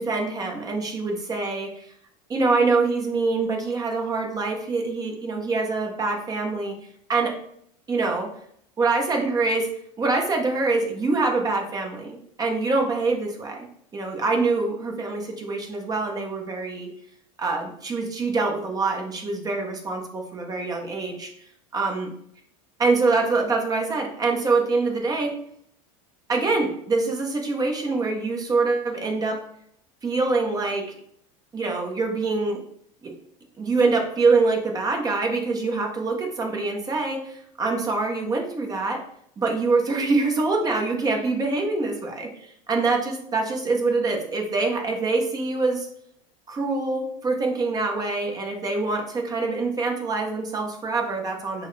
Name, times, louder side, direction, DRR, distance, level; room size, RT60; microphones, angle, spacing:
voice 1, 0.0-1.9 2.3-6.7 7.1-7.4 7.9-8.3 8.8-9.7 10.0-13.7 13.9-16.9 17.4-21.3 21.7-22.1 22.8-25.4 26.3-29.4 30.0-30.9 31.5-32.6 33.0-33.1 33.6-39.0 39.4-45.9 46.5-51.7, right 3 dB, 20° right, 2 dB, 0.9 m, -25 dB
6.0 x 2.2 x 3.2 m, 0.68 s
supercardioid pair, 125°, 17 cm